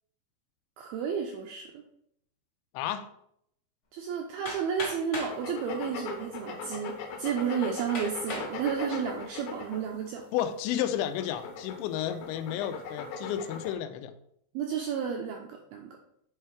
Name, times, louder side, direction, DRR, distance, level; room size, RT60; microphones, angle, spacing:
voice 1, 0.8-1.7 3.9-10.3 14.5-16.0, right 7 dB, 80° right, 2.1 m, -32 dB
voice 2, 2.7-3.1 10.3-14.1, left 10 dB, 85° left, 2.9 m, -32 dB
Hammer, 4.4-5.4 6.3-6.4 7.0-7.1 7.9-8.5 9.1-9.6, left 1 dB, 55° left, 0.8 m, -37 dB
sound 1, 5.2-10.1 10.7-13.7, left 5 dB, 70° left, 2.3 m, -39 dB
7.6 x 4.5 x 4.6 m
omnidirectional pair, 5.1 m